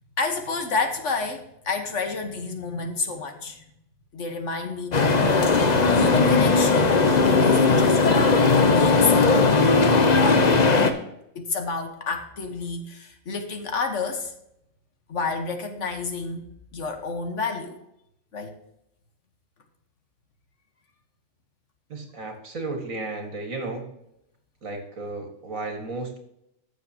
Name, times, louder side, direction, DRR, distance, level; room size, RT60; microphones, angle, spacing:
voice 1, 0.2-3.6 4.1-5.2 5.5-7.0 7.4-9.4 10.1-10.9 11.4-14.3 15.1-16.5 16.7-17.8 18.3-18.6, left 4 dB, 60° left, 5 dB, 1.6 m, -30 dB
sound 1, 4.9-10.9, left 4 dB, 35° left, 0.9 m, -18 dB
voice 2, 21.9-23.9 24.6-26.2, right 3 dB, 75° right, 3 dB, 2.4 m, -33 dB
15.0 x 6.7 x 2.9 m, 0.79 s
omnidirectional pair, 1.4 m